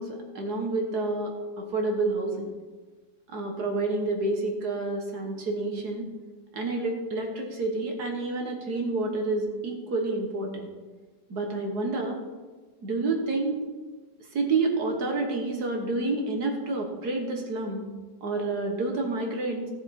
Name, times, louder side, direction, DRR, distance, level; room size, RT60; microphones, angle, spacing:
voice 1, 0.0-2.5 3.3-6.1 6.5-10.7 11.3-12.2 12.8-13.6 14.3-17.8 18.2-19.7, right 3 dB, 65° right, 2 dB, 1.9 m, -29 dB
15.5 x 6.9 x 4.3 m, 1.3 s
omnidirectional pair, 1.9 m